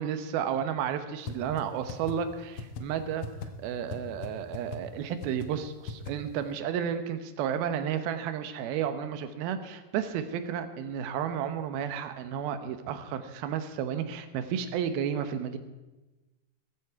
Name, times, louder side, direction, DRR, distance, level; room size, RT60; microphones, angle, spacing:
voice 1, 0.0-3.3 3.6-15.6, right 8 dB, 80° right, 9 dB, 2.9 m, -32 dB
sound 1, 1.3-1.4 1.6-1.7 1.9-2.1 2.6-2.8 3.2-3.5 3.9-4.0 4.2-4.3 4.5-4.8 5.2-5.5 5.9-6.1, left 5 dB, 80° left, 1.4 m, -36 dB
16.5 x 14.0 x 4.8 m, 1.1 s
omnidirectional pair, 4.4 m